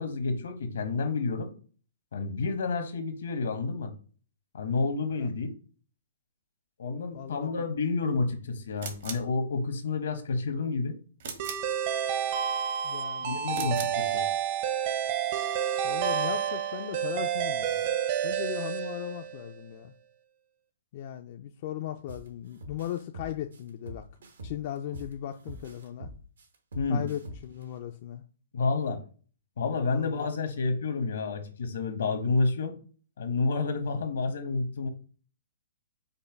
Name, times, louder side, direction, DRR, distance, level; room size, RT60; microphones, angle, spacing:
voice 1, 0.0-1.5 2.1-3.9 4.5-5.5 6.8-11.0 13.2-14.2 26.7-27.0 28.5-29.0 29.6-32.7 33.2-34.9, left 3 dB, 75° left, 7 dB, 1.0 m, -29 dB
voice 2, 7.1-7.6 12.8-13.7 15.8-17.9 18.2-19.9 20.9-24.0 24.4-26.1 26.9-28.2 29.8-30.3, left 11 dB, 45° left, 6 dB, 0.3 m, -37 dB
sound 1, 8.8-9.3 11.2-11.7 13.5-14.0, right 6 dB, 60° right, 1.1 m, -39 dB
sound 2, 11.4-19.5, right 9 dB, 45° right, 0.7 m, -29 dB
sound 3, 22.1-22.3 22.6-25.1 25.5-27.6, right 1 dB, 85° right, 1.2 m, -43 dB
5.3 x 2.2 x 4.6 m, 0.41 s
hypercardioid pair, 150°, 0 cm